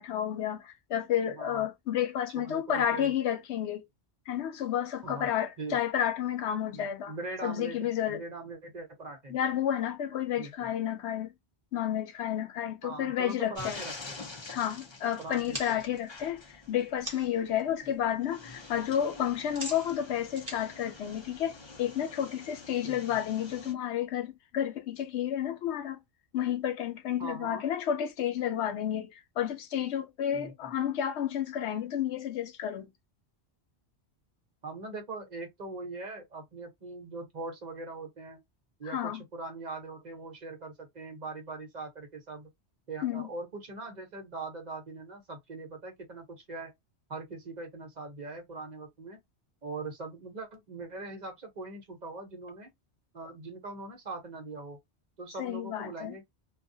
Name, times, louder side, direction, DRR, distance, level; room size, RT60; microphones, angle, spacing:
voice 1, 0.0-3.9 4.3-7.1 7.4-8.2 9.3-11.3 11.7-13.8 14.5-16.4 16.7-26.0 26.3-32.9 38.8-39.2 43.0-43.3 55.4-56.2, left 10 dB, 90° left, 0.9 m, -31 dB
voice 2, 1.3-1.7 2.4-3.1 5.0-5.3 5.6-5.8 6.7-9.4 10.4-10.7 12.8-14.3 15.2-15.8 22.8-23.0 27.2-27.7 30.3-30.7 34.6-38.4 38.8-42.5 42.9-46.7 47.1-49.2 49.6-52.7 53.1-54.8 55.2-56.2, right 3 dB, 45° right, 1.0 m, -41 dB
sound 1, 13.5-23.7, left 3 dB, 30° left, 0.6 m, -47 dB
sound 2, 15.3-17.4 17.8-18.3 18.5-21.8, right 1 dB, 20° right, 0.9 m, -43 dB
2.4 x 2.2 x 2.6 m
omnidirectional pair, 1.1 m